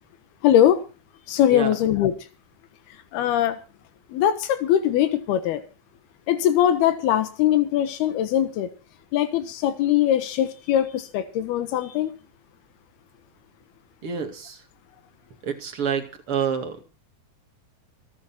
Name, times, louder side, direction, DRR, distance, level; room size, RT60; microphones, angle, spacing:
voice 1, 0.4-0.8 1.3-2.2 3.1-3.6 4.1-5.6 6.3-8.7 9.1-12.1, left 11 dB, 90° left, 3.3 m, -21 dB
voice 2, 14.0-14.6 15.4-16.8, right 7 dB, 40° right, 2.9 m, -28 dB
24.0 x 10.5 x 4.4 m
omnidirectional pair, 4.3 m